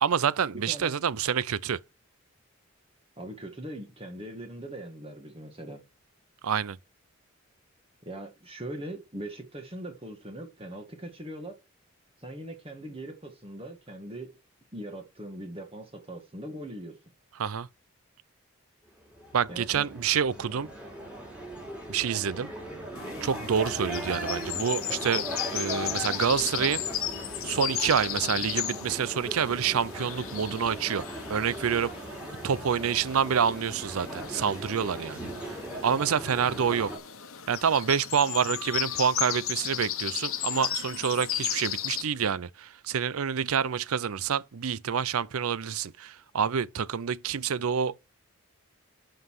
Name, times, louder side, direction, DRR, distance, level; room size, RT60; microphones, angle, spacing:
voice 1, 0.0-1.8 6.4-6.8 17.4-17.7 19.3-20.7 21.9-22.5 23.2-25.2 25.5-26.8 27.4-31.9 32.4-35.3 35.8-36.9 37.5-47.9, right 7 dB, 80° right, 0.5 m, -27 dB
voice 2, 0.6-0.9 3.2-5.8 8.0-11.5 12.2-14.4 14.7-16.9 19.5-19.9, right 1 dB, 25° right, 1.8 m, -40 dB
sound 1, 19.0-37.0, right 1 dB, 5° right, 3.5 m, -39 dB
sound 2, 23.0-42.0, left 11 dB, 75° left, 1.1 m, -35 dB
11.0 x 5.8 x 4.8 m
head